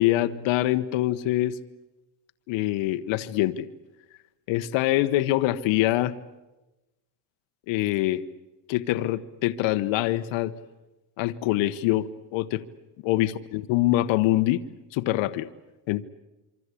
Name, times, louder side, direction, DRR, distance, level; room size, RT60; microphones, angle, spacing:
voice 1, 0.0-1.6 2.5-3.7 4.5-6.1 7.7-8.2 8.7-10.5 11.2-12.6 13.0-14.6 14.9-15.5 15.9-16.0, left 15 dB, 65° left, 10 dB, 1.4 m, -24 dB
27.0 x 24.5 x 8.5 m, 1.0 s
cardioid pair, 120°, 49 cm